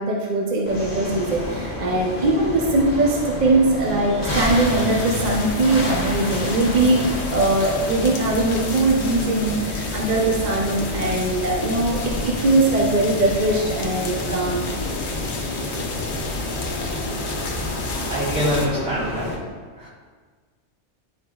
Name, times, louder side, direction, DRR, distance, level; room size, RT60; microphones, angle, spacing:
voice 1, 0.0-14.7, right 2 dB, 45° right, -2 dB, 0.8 m, -21 dB
sound 1, 0.7-19.4, left 1 dB, 15° left, 1.4 m, -30 dB
sound 2, 4.3-18.7, left 4 dB, 65° left, 1.0 m, -31 dB
voice 2, 18.1-19.3 19.8-19.9, equal, 60° right, -7 dB, 2.2 m, -24 dB
9.8 x 5.0 x 2.3 m, 1.5 s
omnidirectional pair, 1.3 m